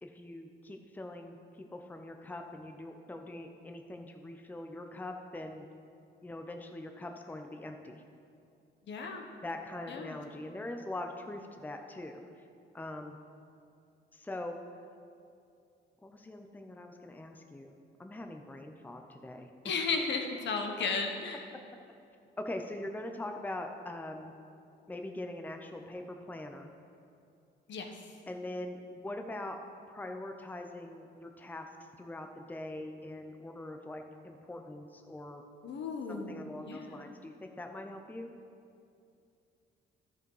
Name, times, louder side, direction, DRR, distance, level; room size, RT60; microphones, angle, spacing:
voice 1, 0.0-5.6 6.2-8.0 9.4-12.5 12.7-13.2 14.1-14.6 16.0-17.7 18.0-19.5 22.4-24.3 24.9-26.7 28.3-29.6 29.9-31.7 32.0-35.4 36.1-38.3, left 1 dB, 10° left, 4 dB, 0.6 m, -42 dB
voice 2, 8.9-9.2 9.9-10.2 19.6-21.4 27.7-28.0 35.6-37.1, left 4 dB, 65° left, 3 dB, 1.1 m, -35 dB
12.0 x 5.2 x 4.8 m, 2.6 s
cardioid pair, 90°, 20 cm